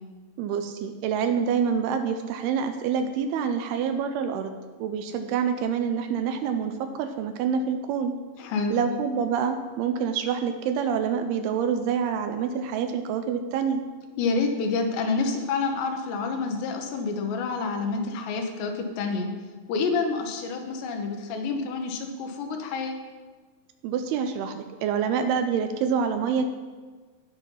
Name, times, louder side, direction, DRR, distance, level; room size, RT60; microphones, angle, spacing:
voice 1, 0.4-4.5 4.8-8.1 8.7-13.8 23.8-26.4, right 7 dB, 80° right, 7 dB, 2.4 m, -27 dB
voice 2, 8.4-8.8 14.2-19.3 19.7-23.0, left 4 dB, 85° left, 4 dB, 3.2 m, -28 dB
16.0 x 5.5 x 4.5 m, 1.4 s
omnidirectional pair, 4.8 m